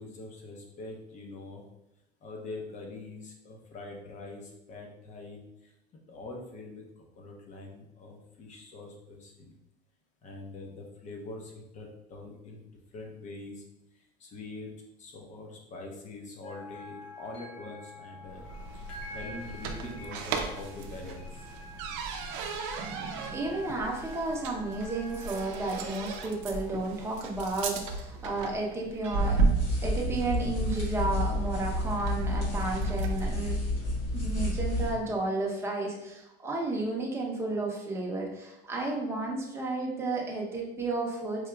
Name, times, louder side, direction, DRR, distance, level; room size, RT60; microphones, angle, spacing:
voice 1, 0.0-1.6 2.2-5.7 6.1-9.5 10.2-12.6 12.9-13.6 14.2-14.7 15.0-18.4 18.7-21.4, left 2 dB, 40° left, 1 dB, 0.7 m, -44 dB
sound 1, 16.4-26.7, left 1 dB, 90° left, 1.2 m, -47 dB
sound 2, 18.3-33.3, right 4 dB, 75° right, 0.5 m, -35 dB
voice 2, 23.3-29.4 29.8-33.6 34.1-41.5, right 2 dB, 15° right, -2 dB, 0.7 m, -32 dB
sound 3, 29.2-34.9, left 1 dB, 70° left, 1.5 m, -30 dB
4.6 x 2.8 x 2.3 m, 0.90 s
cardioid pair, 145°, 20 cm